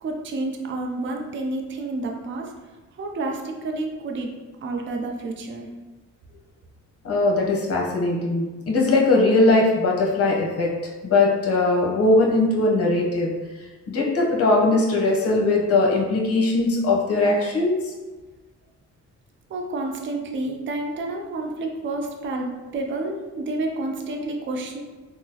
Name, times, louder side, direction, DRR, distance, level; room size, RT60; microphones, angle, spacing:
voice 1, 0.0-2.5 3.0-4.3 4.6-5.7 19.5-24.8, right 2 dB, 40° right, 1 dB, 0.5 m, -29 dB
voice 2, 7.0-10.7 11.0-13.3 13.9-17.8, left 2 dB, 50° left, -2 dB, 0.8 m, -20 dB
3.6 x 2.0 x 2.8 m, 1.2 s
cardioid pair, 90°, 30 cm